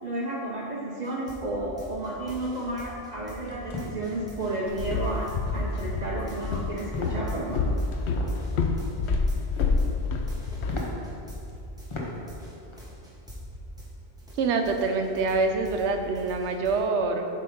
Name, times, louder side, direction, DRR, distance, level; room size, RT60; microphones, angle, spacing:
voice 1, 0.0-7.6, right 1 dB, 45° right, -4 dB, 0.8 m, -32 dB
sound 1, 1.0-13.9 14.2-16.8, equal, 5° right, 1.2 m, -44 dB
sound 2, 3.4-3.9 4.5-4.6 4.9-5.2 5.5-5.8 6.2-6.5 6.9-7.2 7.5-8.3 9.3-9.8 10.2-10.3 10.7-10.9 11.5-11.6 11.9-12.1 12.5-12.8, left 2 dB, 30° left, 0.9 m, -37 dB
Walk footsteps, 4.7-10.8, left 3 dB, 80° left, 0.8 m, -28 dB
voice 2, 14.4-17.3, right 4 dB, 85° right, 5 dB, 1.0 m, -25 dB
7.7 x 3.7 x 5.1 m, 2.7 s
omnidirectional pair, 1.1 m